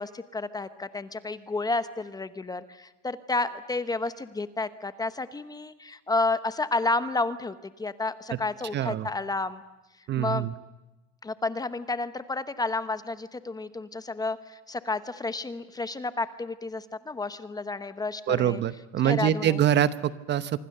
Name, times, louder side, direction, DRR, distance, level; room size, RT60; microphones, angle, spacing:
voice 1, 0.0-9.6 10.2-10.5 11.2-18.6 19.0-19.6, left 3 dB, 10° left, 12 dB, 0.9 m, -31 dB
voice 2, 8.7-9.1 10.1-10.5 18.3-20.6, right 11 dB, 30° right, 14 dB, 0.9 m, -25 dB
26.0 x 24.0 x 6.7 m, 1.1 s
supercardioid pair, 135°, 36 cm